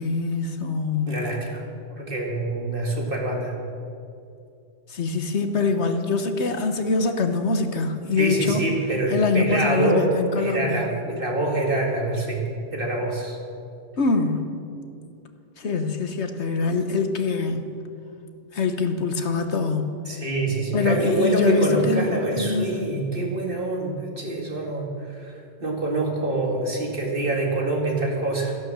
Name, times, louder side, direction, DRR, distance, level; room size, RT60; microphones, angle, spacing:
voice 1, 0.0-1.2 4.9-8.6 9.1-10.9 14.0-14.5 15.6-17.7 18.5-19.9 20.7-22.7, left 4 dB, 65° left, 6 dB, 1.4 m, -24 dB
voice 2, 1.1-1.6 2.0-3.6 8.2-12.4 12.7-13.4 20.1-28.6, right 2 dB, 45° right, -1 dB, 2.5 m, -25 dB
14.5 x 11.0 x 7.4 m, 2.5 s
omnidirectional pair, 1.3 m